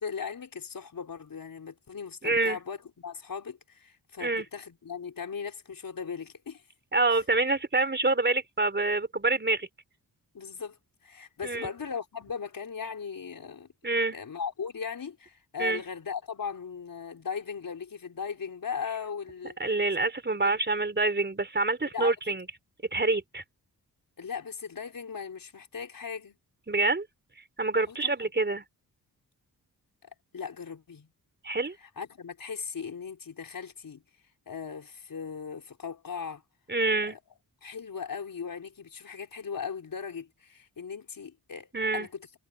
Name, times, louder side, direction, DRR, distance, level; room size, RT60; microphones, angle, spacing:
voice 1, 0.0-6.6 10.3-10.8 11.0-13.7 14.1-19.6 21.9-22.1 24.2-26.4 27.9-28.3 30.0-31.1 31.8-34.0 34.5-36.4 37.1-37.2 37.6-42.3, left 6 dB, 65° left, 4.6 m, -38 dB
voice 2, 2.2-2.6 4.2-4.5 6.9-9.7 11.4-11.7 13.8-14.2 15.6-15.8 19.6-22.4 22.9-23.4 26.7-27.1 27.6-28.6 31.4-31.7 36.7-37.2 41.7-42.1, right 3 dB, 30° right, 4.2 m, -26 dB
cardioid pair, 65°, 37 cm